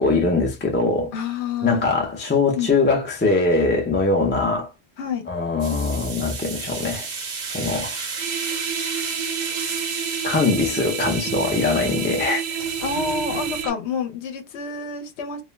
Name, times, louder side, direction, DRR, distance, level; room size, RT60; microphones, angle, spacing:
voice 1, 0.0-1.1 1.6-4.7 5.3-7.1 7.5-8.0 10.2-12.6, left 3 dB, 20° left, 0.3 m, -21 dB
voice 2, 1.1-1.9 2.5-2.7 5.0-5.3 12.8-15.4, left 6 dB, 70° left, 0.9 m, -28 dB
sound 1, 5.6-13.6, right 4 dB, 50° right, 0.6 m, -32 dB
sound 2, 8.2-13.7, right 8 dB, 80° right, 0.9 m, -29 dB
2.3 x 2.1 x 3.1 m
omnidirectional pair, 1.2 m